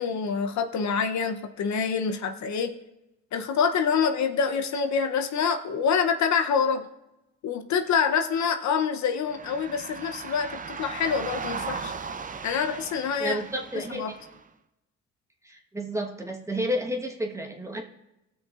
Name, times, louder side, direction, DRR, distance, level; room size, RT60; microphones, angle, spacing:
voice 1, 0.0-2.7 3.3-6.9 7.4-11.9 12.4-13.4 13.7-14.1, left 6 dB, 65° left, 6 dB, 0.8 m, -26 dB
sound 1, 9.2-14.4, right 5 dB, 25° right, 0.6 m, -37 dB
voice 2, 13.2-14.0 15.4-17.8, equal, 10° right, 1 dB, 1.2 m, -31 dB
18.0 x 6.2 x 2.4 m, 0.93 s
cardioid pair, 90°, 30 cm